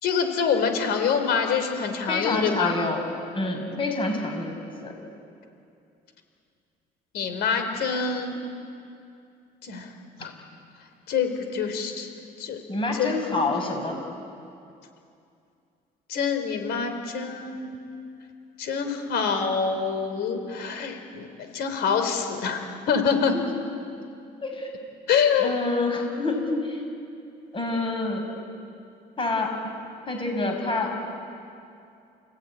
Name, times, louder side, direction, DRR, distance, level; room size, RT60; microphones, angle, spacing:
voice 1, 0.0-2.7 7.1-8.4 9.6-9.9 10.2-10.3 11.1-12.1 12.4-12.6 12.9-13.4 16.1-17.6 18.6-21.3 21.5-23.3 25.1-25.5, left 6 dB, 75° left, 6 dB, 4.1 m, -25 dB
voice 2, 2.1-3.0 3.3-4.9 12.7-14.0 22.9-23.2 24.4-24.7 25.3-26.8 27.5-28.2 29.2-29.5 30.1-30.9, left 2 dB, 30° left, 3 dB, 6.2 m, -27 dB
29.5 x 17.0 x 9.8 m, 2.5 s
cardioid pair, 110°, 17 cm